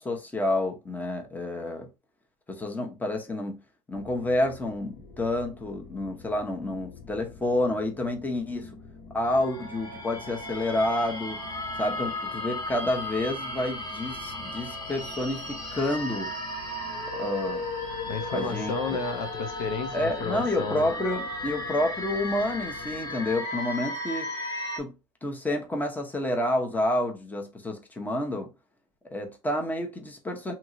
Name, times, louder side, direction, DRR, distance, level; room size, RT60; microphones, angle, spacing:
voice 1, 0.0-1.9 2.5-3.6 3.9-8.7 9.1-11.4 11.8-16.3 17.1-17.6 18.3-18.7 19.9-24.3 24.8-24.9 25.2-28.5 29.1-30.5, left 1 dB, 10° left, 0.9 m, -29 dB
sound 1, 3.9-23.4, left 5 dB, 55° left, 0.9 m, -48 dB
sound 2, 9.2-24.8, left 1 dB, 25° left, 1.3 m, -35 dB
voice 2, 18.1-20.9, left 5 dB, 70° left, 0.7 m, -32 dB
2.9 x 2.9 x 2.5 m
supercardioid pair, 100°, 18 cm